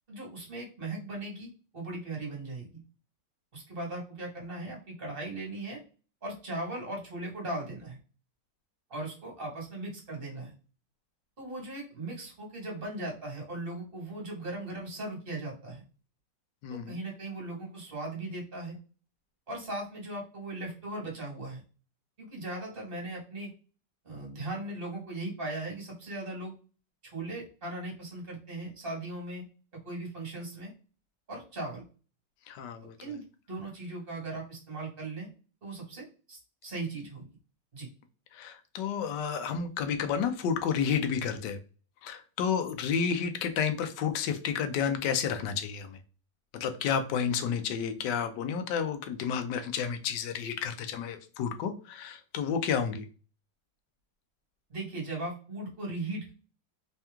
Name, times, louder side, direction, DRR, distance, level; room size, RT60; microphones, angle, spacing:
voice 1, 0.1-2.8 3.5-5.8 6.2-8.0 8.9-10.5 11.4-15.8 16.7-18.8 19.5-21.6 22.2-23.5 24.0-26.5 27.0-29.4 29.8-30.7 31.3-31.8 33.0-35.3 35.6-37.3 37.7-37.9 54.7-56.3, right 2 dB, 30° right, -1 dB, 1.6 m, -38 dB
voice 2, 16.6-17.0 32.5-33.1 38.3-41.6 42.0-46.0 46.5-53.0, left 7 dB, 75° left, 8 dB, 1.2 m, -31 dB
3.5 x 2.9 x 3.5 m, 0.36 s
omnidirectional pair, 2.0 m